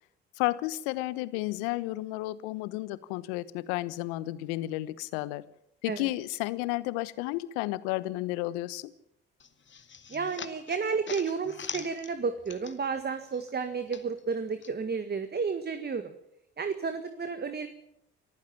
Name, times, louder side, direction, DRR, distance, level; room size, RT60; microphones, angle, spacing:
voice 1, 0.4-5.4 5.8-8.9, left 18 dB, 70° left, 18 dB, 1.1 m, -32 dB
sound 1, 9.4-13.0 13.3-14.7, left 6 dB, 35° left, 2.3 m, -43 dB
voice 2, 10.1-16.1 16.6-17.7, right 5 dB, 30° right, 9 dB, 1.8 m, -32 dB
25.5 x 14.5 x 7.2 m, 0.77 s
hypercardioid pair, 55°, 32 cm